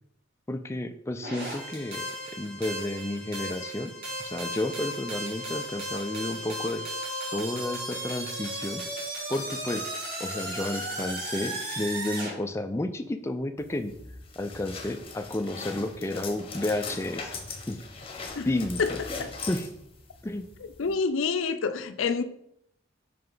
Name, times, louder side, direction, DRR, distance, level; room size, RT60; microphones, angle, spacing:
voice 1, 0.5-2.0 2.3-3.9 4.2-6.8 7.3-8.8 9.3-9.9 10.2-13.9 14.4-17.3 17.7-17.8 18.5-19.0 19.5-19.7 20.2-20.5, left 1 dB, 15° left, 7 dB, 0.3 m, -31 dB
sound 1, 1.2-12.3, right 1 dB, 55° right, 2.5 m, -35 dB
sound 2, 13.6-20.9, left 4 dB, 30° left, 0.9 m, -40 dB
voice 2, 20.8-22.2, left 5 dB, 80° left, 11 dB, 0.5 m, -27 dB
5.7 x 5.4 x 3.8 m, 0.74 s
head